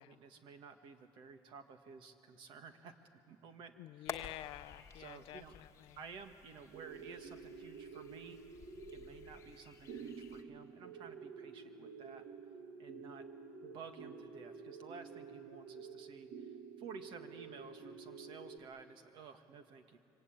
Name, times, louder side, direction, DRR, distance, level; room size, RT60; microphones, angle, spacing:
voice 1, 0.0-2.9 3.3-3.7 4.9-5.6 6.0-8.4 8.9-12.2 12.8-13.3 13.6-16.5 16.8-20.0, right 5 dB, 60° right, 7 dB, 1.8 m, -53 dB
voice 2, 3.8-6.0, left 16 dB, 80° left, 15 dB, 0.5 m, -49 dB
sound 1, 4.1-10.4, left 6 dB, 30° left, 1.4 m, -52 dB
sound 2, 6.7-18.6, right 5 dB, 85° right, 1.7 m, -50 dB
26.5 x 24.5 x 8.9 m, 2.8 s
cardioid pair, 155°, 9 cm